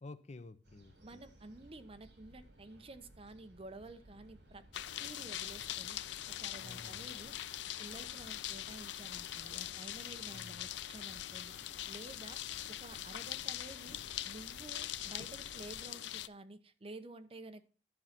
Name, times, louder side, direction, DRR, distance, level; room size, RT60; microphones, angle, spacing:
voice 1, 0.0-1.2 6.6-7.1 10.3-10.7, left 3 dB, 40° left, 0.5 m, -51 dB
sound 1, 0.6-15.8, right 1 dB, 75° right, 3.7 m, -60 dB
voice 2, 1.0-4.6 5.0-6.0 6.4-7.3 7.8-11.5 11.9-12.4 12.7-17.6, right 2 dB, 35° right, 0.8 m, -51 dB
sound 2, 4.7-16.3, left 12 dB, 85° left, 0.4 m, -42 dB
11.5 x 5.6 x 5.9 m
head